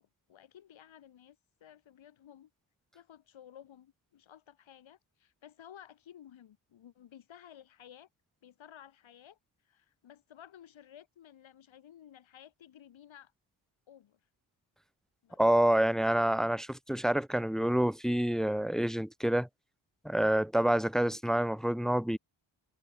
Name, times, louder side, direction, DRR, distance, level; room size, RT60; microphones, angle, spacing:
voice 1, 0.0-2.5 2.9-8.1 8.4-9.4 9.7-13.3 13.9-14.2 15.2-15.4, left 10 dB, 80° left, 5.2 m, -55 dB
voice 2, 15.4-19.5 20.0-22.2, right 1 dB, ahead, 0.7 m, -27 dB
cardioid pair, 70°, 46 cm